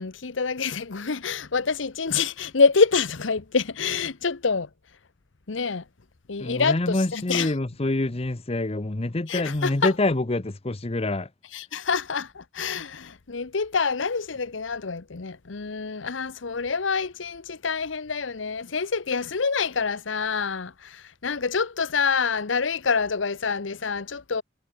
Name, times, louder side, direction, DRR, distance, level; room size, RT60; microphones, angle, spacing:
voice 1, 0.0-4.7 5.5-5.8 6.3-7.5 9.3-9.9 11.5-24.4, left 5 dB, 80° left, 0.9 m, -26 dB
voice 2, 6.4-11.3, left 2 dB, 30° left, 0.9 m, -26 dB
head